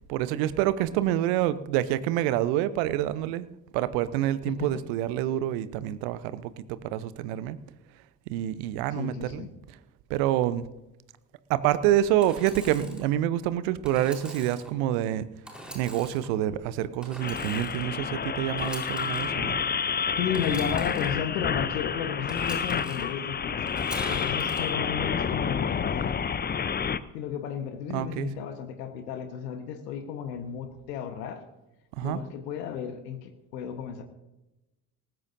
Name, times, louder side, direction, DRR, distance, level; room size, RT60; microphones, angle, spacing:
voice 1, 0.0-3.5 3.7-7.6 8.3-9.5 10.1-10.7 11.5-15.3 15.7-19.6 27.9-28.3 31.9-32.2, right 12 dB, 65° right, 15 dB, 0.9 m, -27 dB
voice 2, 8.9-9.5 20.2-23.7 24.1-26.2 27.1-31.4 32.0-34.0, left 8 dB, 75° left, 7 dB, 1.3 m, -33 dB
Engine / Sawing, 12.2-13.0 13.8-14.7 15.4-16.3 17.0-17.9 18.5-19.3 20.3-21.1 22.3-23.0 23.7-24.6, equal, ahead, 4.1 m, -42 dB
sound 1, 17.2-27.0, left 7 dB, 20° left, 0.6 m, -29 dB
18.5 x 15.5 x 2.7 m, 0.95 s
figure-of-eight pair, 50°, 49 cm